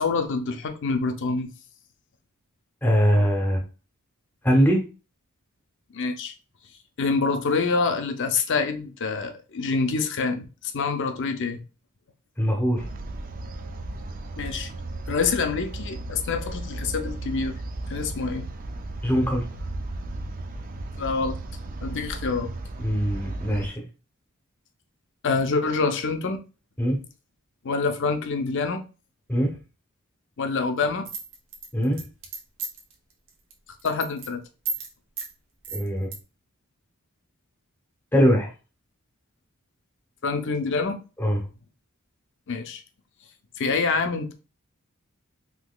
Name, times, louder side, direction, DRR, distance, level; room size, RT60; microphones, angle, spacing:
voice 1, 0.0-1.5 5.9-6.3 7.0-11.6 14.4-14.7 15.1-17.5 17.9-18.5 21.0-21.3 21.8-22.5 25.2-26.4 27.6-28.8 30.4-31.1 33.8-34.4 40.2-41.0 42.5-42.8 43.6-44.3, left 4 dB, 55° left, 0.5 m, -26 dB
voice 2, 2.8-3.6 4.4-4.8 12.4-12.8 19.0-19.5 22.8-23.8 26.8-27.0 29.3-29.5 31.7-32.0 35.7-36.1 38.1-38.5 41.2-41.4, equal, 10° left, 0.7 m, -21 dB
sound 1, 12.8-23.7, right 2 dB, 40° right, 0.3 m, -35 dB
sound 2, 31.1-32.9 33.3-33.5 33.8-34.3 34.7-34.9 35.2-35.3 35.6-36.2, right 5 dB, 60° right, 0.8 m, -33 dB
3.7 x 2.8 x 2.3 m
head